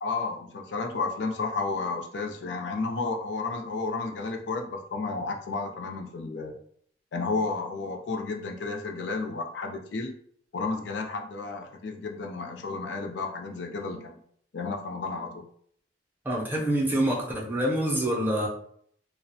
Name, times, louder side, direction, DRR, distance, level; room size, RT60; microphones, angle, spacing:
voice 1, 0.0-6.5 7.1-10.1 10.5-14.2 14.5-15.4, left 3 dB, 80° left, 3 dB, 0.4 m, -32 dB
voice 2, 16.2-18.5, right 1 dB, 10° right, -4 dB, 0.4 m, -26 dB
2.3 x 2.0 x 2.7 m, 0.63 s
head